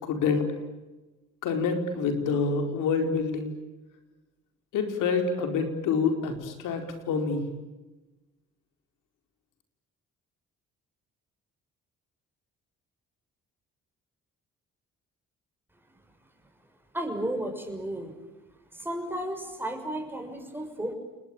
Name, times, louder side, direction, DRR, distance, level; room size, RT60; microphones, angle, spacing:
voice 1, 0.0-0.5 1.4-3.5 4.7-7.4, left 5 dB, 90° left, 6 dB, 4.6 m, -27 dB
voice 2, 16.9-18.2 18.7-20.9, right 1 dB, 5° right, 4 dB, 6.3 m, -33 dB
29.5 x 20.0 x 9.0 m, 1.1 s
cardioid pair, 90°, 30 cm